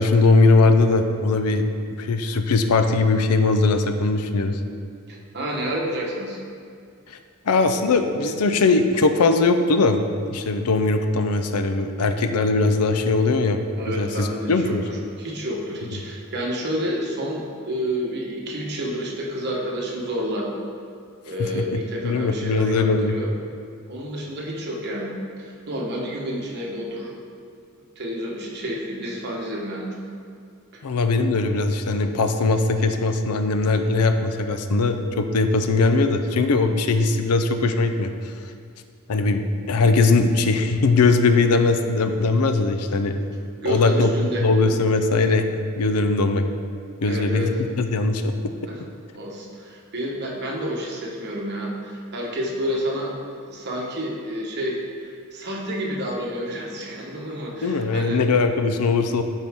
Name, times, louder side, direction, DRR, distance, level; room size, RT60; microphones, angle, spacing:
voice 1, 0.0-1.7 2.0-4.6 7.1-7.2 7.5-10.0 10.3-14.8 21.4-23.2 30.8-38.1 39.1-43.1 43.7-44.1 44.4-46.5 47.0-47.5 47.8-48.3 57.6-59.2, left 3 dB, 85° left, 8 dB, 0.6 m, -20 dB
voice 2, 5.1-6.4 13.8-20.5 21.2-23.3 23.9-27.2 28.0-29.9 43.6-44.5 47.0-47.6 48.7-48.8 49.1-58.2, equal, 50° right, -2 dB, 1.2 m, -29 dB
12.0 x 4.5 x 3.6 m, 2.3 s
head